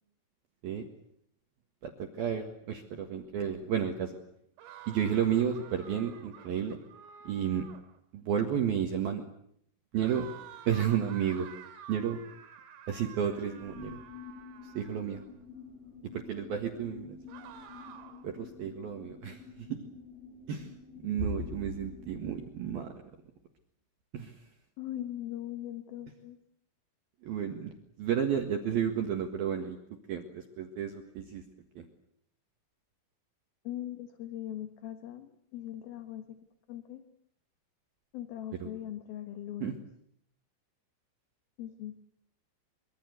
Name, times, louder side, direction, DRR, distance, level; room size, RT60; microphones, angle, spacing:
voice 1, 1.8-4.2 4.9-6.8 7.2-7.7 8.1-9.2 9.9-10.3 10.7-11.5 11.9-12.2 12.9-14.0 14.6-15.2 16.1-17.2 18.2-19.8 20.5-20.7 21.0-22.9 24.1-24.4 27.2-27.7 28.0-29.8 30.1-31.4 31.8-31.9 38.6-38.7 39.6-39.7, right 8 dB, 60° right, 4 dB, 2.9 m, -32 dB
sound 1, 4.6-8.0 10.0-15.3 17.3-18.3, right 9 dB, 75° right, 5.0 m, -50 dB
sound 2, 13.6-22.5, left 7 dB, 20° left, 2.0 m, -49 dB
voice 2, 24.8-26.4 33.6-36.4 36.7-37.0 38.1-39.8 41.6-42.0, left 12 dB, 60° left, 7 dB, 2.7 m, -40 dB
24.5 x 24.0 x 8.2 m, 0.70 s
omnidirectional pair, 6.0 m